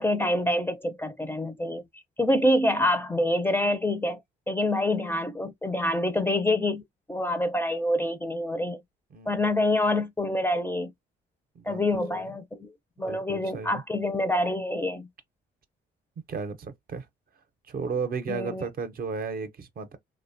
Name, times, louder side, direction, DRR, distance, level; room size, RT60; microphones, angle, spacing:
voice 1, 0.0-1.8 2.2-4.2 4.5-6.8 7.1-8.8 9.3-10.9 11.7-12.7 13.0-15.1 18.3-18.6, left 1 dB, 10° left, 0.4 m, -26 dB
voice 2, 9.1-9.4 11.6-12.3 13.1-13.8 16.3-17.1 17.7-20.0, right 5 dB, 50° right, 0.6 m, -34 dB
2.7 x 2.1 x 2.5 m
cardioid pair, 90°, 20 cm